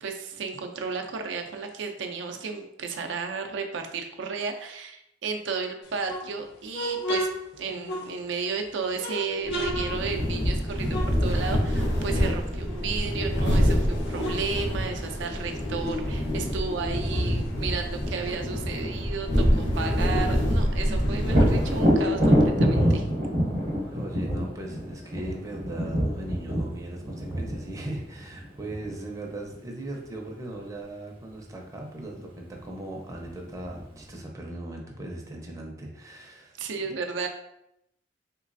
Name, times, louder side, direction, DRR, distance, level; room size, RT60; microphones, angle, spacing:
voice 1, 0.0-7.3 7.6-23.1 36.6-37.3, right 5 dB, 85° right, 4 dB, 0.4 m, -33 dB
sound 1, 5.8-8.5 8.9-11.8 12.1-13.5 13.8-16.1 16.4-19.0 19.3-19.4 19.7-23.1, left 1 dB, 60° left, 0.6 m, -36 dB
sound 2, 9.5-22.2, equal, 85° left, 0.9 m, -26 dB
Thunder, 21.2-28.9 32.6-32.7 33.1-34.0, equal, 55° right, 0.8 m, -25 dB
voice 2, 23.9-36.6, right 1 dB, 20° right, 0 dB, 0.5 m, -38 dB
3.2 x 3.0 x 2.5 m, 0.80 s
head